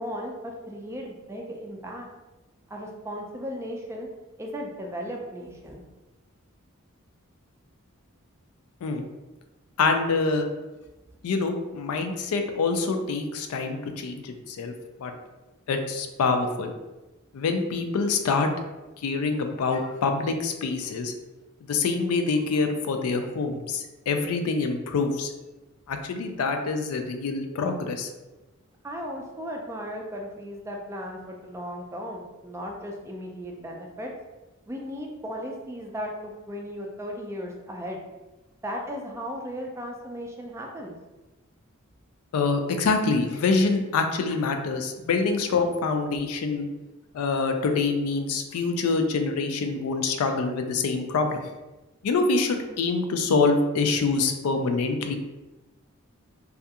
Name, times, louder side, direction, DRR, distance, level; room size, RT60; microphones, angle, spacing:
voice 1, 0.0-2.1 2.7-4.1 4.4-5.8 28.8-34.1 34.7-38.0 38.6-41.0, equal, 15° right, 0 dB, 0.3 m, -36 dB
voice 2, 9.8-10.5 11.2-14.7 15.0-15.1 15.7-16.7 17.3-18.5 19.0-21.1 21.6-25.3 25.9-28.1 42.3-46.7 47.1-51.4 52.0-55.2, left 4 dB, 85° left, 5 dB, 0.3 m, -25 dB
2.3 x 2.3 x 2.7 m, 1.1 s
head